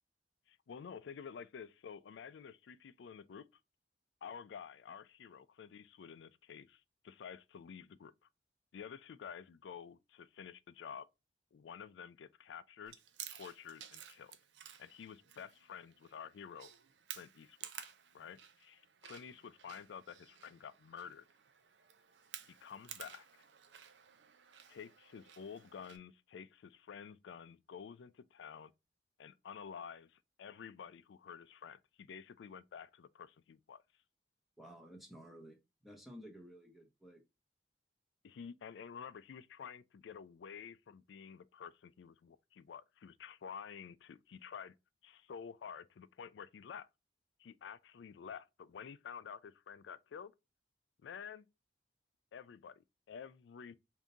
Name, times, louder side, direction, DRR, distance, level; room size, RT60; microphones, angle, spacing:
voice 1, 0.5-3.5 4.2-8.3 8.7-11.1 11.5-13.0 13.3-14.4 14.8-16.7 17.1-17.6 18.1-21.3 22.5-23.5 24.7-28.7 29.2-33.8 38.2-44.7 45.0-46.9 47.4-50.3 51.0-51.5 52.3-53.8, left 7 dB, 90° left, 0.4 m, -50 dB
Chewing mastication, 12.9-26.0, right 10 dB, 90° right, 0.5 m, -54 dB
voice 2, 34.6-35.6 35.8-37.2, equal, ahead, 0.7 m, -53 dB
3.6 x 2.7 x 3.8 m
head